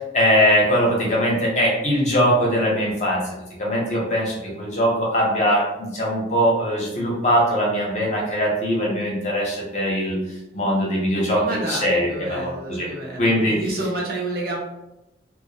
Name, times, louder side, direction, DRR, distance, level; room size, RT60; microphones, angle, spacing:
voice 1, 0.1-3.2 3.6-10.2 10.5-12.9 13.2-13.6, equal, 40° left, -4 dB, 0.7 m, -21 dB
voice 2, 11.4-14.6, right 2 dB, 55° right, -2 dB, 0.6 m, -29 dB
2.2 x 2.1 x 2.7 m, 0.91 s
head